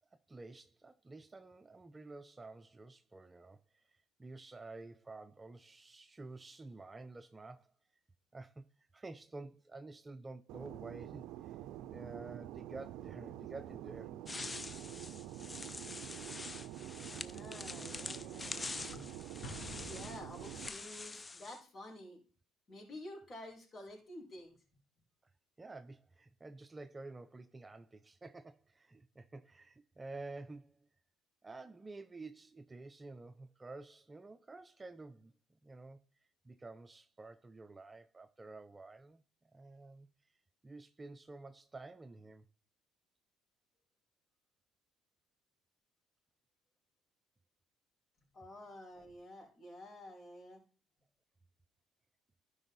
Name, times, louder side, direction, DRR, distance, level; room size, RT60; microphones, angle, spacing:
voice 1, 0.3-3.6 4.2-7.7 8.3-8.6 8.9-11.6 11.9-14.2 25.6-30.9 31.4-35.3 35.6-36.0 36.4-39.2 39.5-40.1 40.6-42.5, right 3 dB, 20° right, 0.6 m, -50 dB
Fixed-wing aircraft airplane, 10.5-20.7, right 13 dB, 75° right, 0.4 m, -47 dB
sound 1, 14.3-21.6, left 3 dB, 25° left, 0.6 m, -46 dB
voice 2, 17.1-19.0 19.9-22.2 22.7-24.5 48.3-50.6, left 1 dB, 40° left, 4.9 m, -50 dB
Explosion, 19.4-21.1, left 1 dB, 65° left, 3.2 m, -50 dB
12.0 x 5.5 x 4.0 m
supercardioid pair, 80°, 0 cm